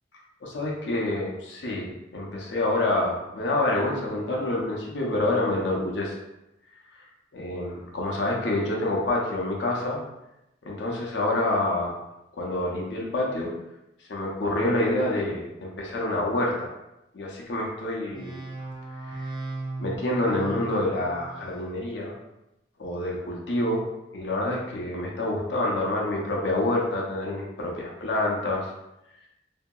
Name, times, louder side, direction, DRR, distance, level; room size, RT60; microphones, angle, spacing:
voice 1, 0.4-6.2 7.3-10.0 10.6-12.0 12.3-13.5 14.1-16.7 17.1-18.4 19.2-19.3 19.8-22.2 22.8-23.8 24.1-28.7, left 1 dB, 80° left, -2 dB, 0.6 m, -27 dB
sound 1, 18.1-21.7, right 2 dB, 25° right, 0.5 m, -37 dB
2.7 x 2.7 x 2.2 m, 0.91 s
head